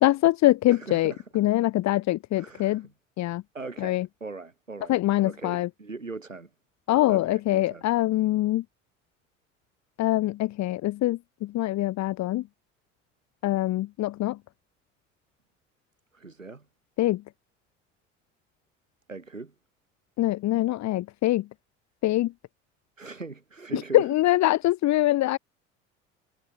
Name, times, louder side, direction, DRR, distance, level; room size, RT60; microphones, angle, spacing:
voice 1, 0.0-2.8 3.2-3.4 3.8-4.1 4.9-5.7 6.9-8.6 10.0-12.4 13.4-14.4 17.0-17.2 20.2-21.4 22.0-22.3 23.7-25.4, left 16 dB, 45° left, 1.5 m, -24 dB
voice 2, 0.7-1.2 1.9-2.0 2.3-2.8 3.5-5.0 5.2-6.5 7.1-7.8 16.1-16.6 19.1-19.5 23.0-24.1, right 3 dB, 90° right, 6.1 m, -40 dB
figure-of-eight pair, 65°, 38 cm